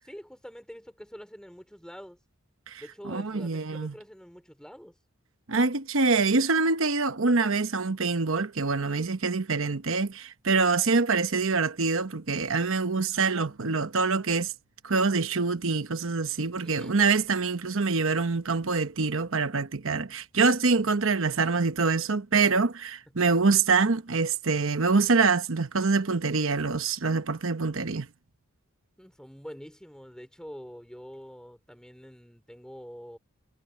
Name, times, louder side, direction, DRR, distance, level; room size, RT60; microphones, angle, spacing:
voice 1, 0.0-2.2 2.8-5.0 16.6-17.0 29.0-33.2, equal, 5° left, 3.6 m, -45 dB
voice 2, 2.7-3.9 5.5-14.5 14.8-28.1, right 4 dB, 65° right, 1.0 m, -25 dB
head